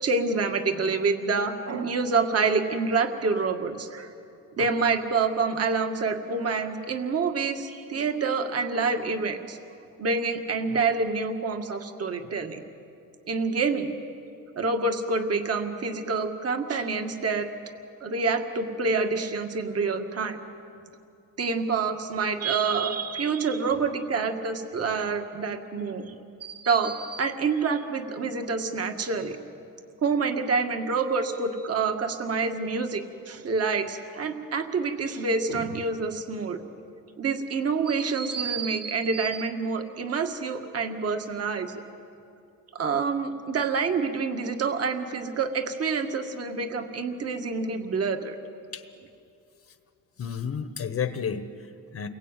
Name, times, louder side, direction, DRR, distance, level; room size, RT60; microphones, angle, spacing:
voice 1, 0.0-4.1 4.6-9.6 10.0-12.6 13.3-13.9 14.6-17.5 18.0-20.4 21.4-26.1 26.4-29.4 30.0-36.6 37.2-41.7 42.7-48.4, right 4 dB, 45° right, 6 dB, 2.1 m, -27 dB
voice 2, 50.2-52.1, left 7 dB, 45° left, 9 dB, 1.3 m, -32 dB
29.5 x 22.0 x 9.2 m, 2.6 s
cardioid pair, 110°, 35 cm